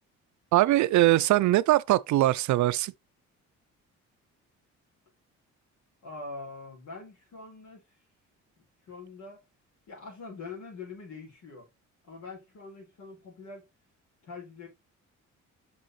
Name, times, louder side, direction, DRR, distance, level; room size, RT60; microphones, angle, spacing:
voice 1, 0.5-2.9, right 16 dB, 70° right, 0.5 m, -22 dB
voice 2, 6.0-7.8 8.8-9.4 9.9-11.7 12.1-13.7 14.2-14.7, left 3 dB, 75° left, 4.4 m, -43 dB
6.6 x 5.5 x 3.1 m
cardioid pair, 90°, 30 cm